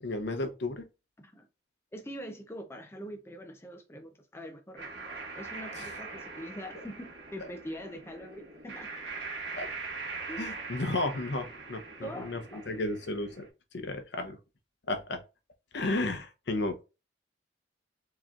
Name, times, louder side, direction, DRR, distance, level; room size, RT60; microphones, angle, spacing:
voice 1, 0.0-0.9 5.8-5.9 9.5-9.7 10.4-13.5 13.7-14.4 14.9-15.2 15.7-16.9, left 2 dB, 65° left, 0.7 m, -33 dB
voice 2, 1.9-5.0 5.3-8.9 10.3-10.5 12.0-12.7, equal, 15° left, 0.5 m, -43 dB
sound 1, 4.8-13.5, right 3 dB, 70° right, 1.1 m, -42 dB
4.6 x 2.9 x 2.4 m
head